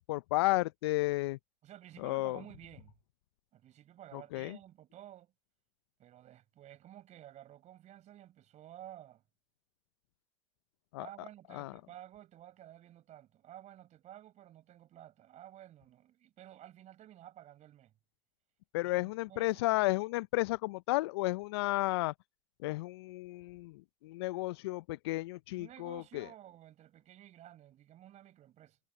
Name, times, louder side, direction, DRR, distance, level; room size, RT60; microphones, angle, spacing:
voice 1, 0.0-1.4 2.0-2.4 4.1-4.6 10.9-11.1 11.5-11.7 18.7-22.1 22.6-26.3, left 20 dB, 80° left, 0.7 m, -33 dB
voice 2, 1.6-3.0 3.5-5.3 6.0-9.2 11.0-17.9 18.8-19.9 25.6-28.8, right 12 dB, 60° right, 5.2 m, -53 dB
figure-of-eight pair, 45°, 13 cm